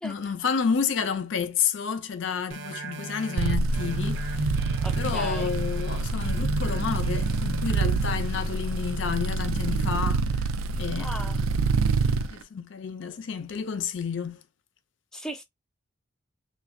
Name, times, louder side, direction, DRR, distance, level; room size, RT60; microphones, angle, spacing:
voice 1, 0.0-4.4 4.9-10.4 10.8-11.1 12.3-14.4, left 6 dB, 65° left, 0.5 m, -30 dB
sound 1, 2.5-9.7 10.2-10.3, right 1 dB, 65° right, 0.7 m, -35 dB
sound 2, 3.4-12.3, right 4 dB, 90° right, 0.4 m, -27 dB
voice 2, 4.8-5.5 11.0-11.4 15.1-15.4, equal, 5° left, 0.4 m, -37 dB
3.1 x 2.2 x 2.5 m
head